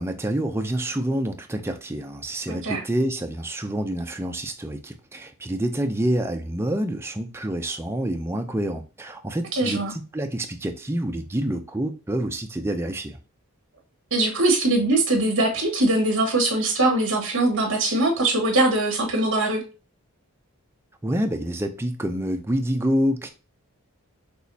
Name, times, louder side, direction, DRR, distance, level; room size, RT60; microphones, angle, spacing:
voice 1, 0.0-13.2 21.0-23.3, right 1 dB, 10° right, 0.5 m, -27 dB
voice 2, 2.5-2.8 9.5-9.9 14.1-19.6, right 2 dB, 55° right, 1.5 m, -22 dB
6.2 x 3.0 x 2.7 m
head